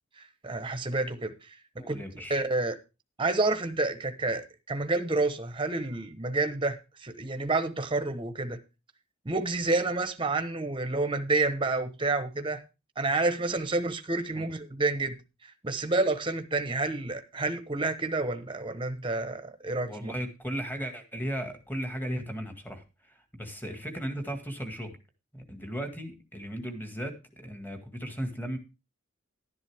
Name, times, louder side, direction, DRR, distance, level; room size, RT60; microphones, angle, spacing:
voice 1, 0.2-1.6 1.9-2.0 2.3-2.8 3.2-8.6 9.2-12.6 13.0-15.2 15.4-20.1, right 3 dB, 25° right, 1.1 m, -29 dB
voice 2, 1.8-2.4 14.3-14.5 19.8-25.0 25.3-28.6, equal, 10° left, 1.9 m, -36 dB
11.5 x 10.5 x 3.5 m
head